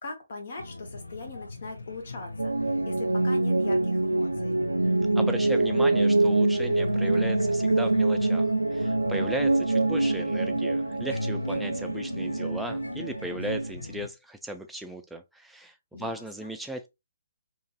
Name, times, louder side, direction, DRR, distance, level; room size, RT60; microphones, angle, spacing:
voice 1, 0.0-4.6 15.9-16.5, left 3 dB, 50° left, 1.0 m, -40 dB
sound 1, 0.6-14.1, left 2 dB, 80° left, 0.4 m, -38 dB
sound 2, 2.4-13.7, right 2 dB, 80° right, 0.3 m, -25 dB
voice 2, 5.2-16.9, right 1 dB, 5° right, 0.4 m, -37 dB
2.9 x 2.5 x 2.4 m
figure-of-eight pair, 135°, 0 cm